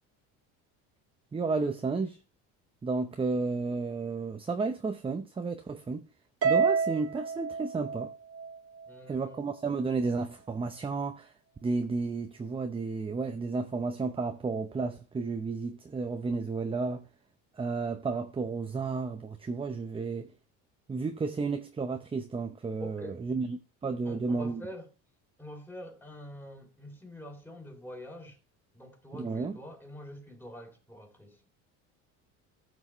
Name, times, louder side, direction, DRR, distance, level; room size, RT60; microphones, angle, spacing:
voice 1, 1.3-2.2 2.8-6.1 6.4-8.1 9.1-11.3 11.6-17.1 17.6-20.3 20.9-24.6 29.1-29.6, right 4 dB, 15° right, 0.7 m, -32 dB
Harp, 6.4-8.9, right 5 dB, 40° right, 1.7 m, -29 dB
voice 2, 8.9-9.5 22.8-23.2 24.0-24.9 25.4-28.4 28.7-31.4, equal, 5° left, 3.1 m, -45 dB
14.5 x 6.2 x 3.1 m
supercardioid pair, 105°, 36 cm